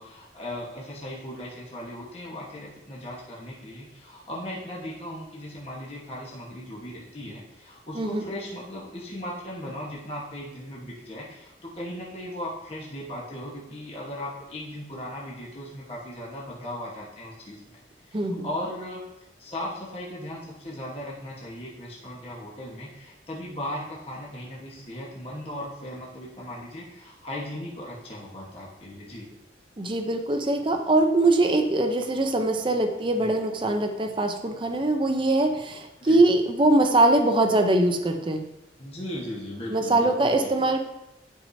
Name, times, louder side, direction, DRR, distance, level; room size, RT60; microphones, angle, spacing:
voice 1, 0.0-17.8 18.1-19.0 19.4-29.3 33.2-33.3 36.0-36.2 38.8-40.5, left 1 dB, 35° left, -5 dB, 1.3 m, -37 dB
voice 2, 18.1-18.5 29.8-38.4 39.7-40.8, right 2 dB, 30° right, 5 dB, 0.6 m, -22 dB
10.5 x 4.8 x 2.7 m, 0.90 s
head